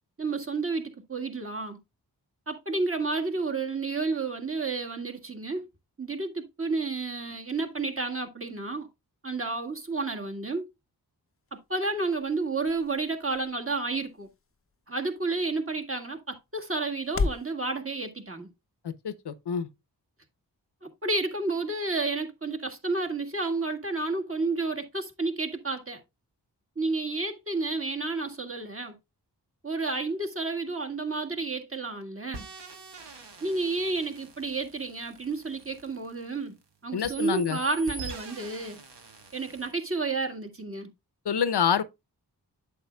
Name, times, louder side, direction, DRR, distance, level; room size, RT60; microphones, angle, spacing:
voice 1, 0.2-1.8 2.5-5.7 6.0-8.9 9.2-10.7 11.5-14.3 14.9-18.5 20.8-26.0 26.8-29.0 29.6-32.5 33.4-36.5 36.8-38.8 39.3-40.9, right 3 dB, 35° right, 1.8 m, -31 dB
sound 1, 11.3-17.5, left 4 dB, 35° left, 0.6 m, -38 dB
voice 2, 18.8-19.7 36.9-37.6 41.2-41.8, left 7 dB, 75° left, 0.8 m, -27 dB
sound 2, 32.3-36.6 37.0-39.7, right 3 dB, 85° right, 1.4 m, -45 dB
8.4 x 7.2 x 2.2 m
cardioid pair, 40°, 41 cm